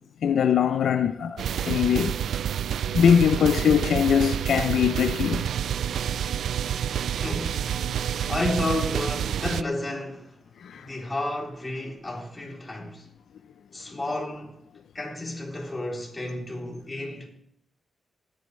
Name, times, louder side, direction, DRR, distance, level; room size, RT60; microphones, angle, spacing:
voice 1, 0.2-2.1 2.9-5.5 10.6-10.9, left 8 dB, 85° left, 0.5 m, -22 dB
sound 1, 1.4-9.6, right 9 dB, 90° right, 0.3 m, -28 dB
voice 2, 7.2-7.6 8.3-10.3 10.7-13.1 13.7-14.6 14.9-17.3, left 1 dB, 25° left, 3.3 m, -31 dB
19.5 x 8.9 x 3.2 m
cardioid pair, 85°, 0 cm